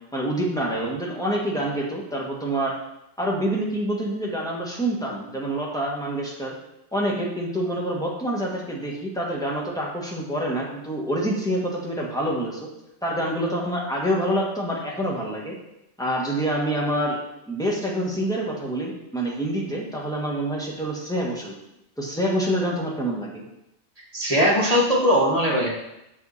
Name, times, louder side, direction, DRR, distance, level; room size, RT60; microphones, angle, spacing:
voice 1, 0.1-2.8 3.2-6.6 6.9-12.7 13.0-15.5 16.0-17.2 17.5-21.5 22.0-23.4, right 1 dB, 5° left, -3 dB, 1.8 m, -26 dB
voice 2, 24.1-25.7, equal, 30° right, -5 dB, 1.9 m, -20 dB
8.1 x 6.6 x 4.3 m, 0.87 s
omnidirectional pair, 1.3 m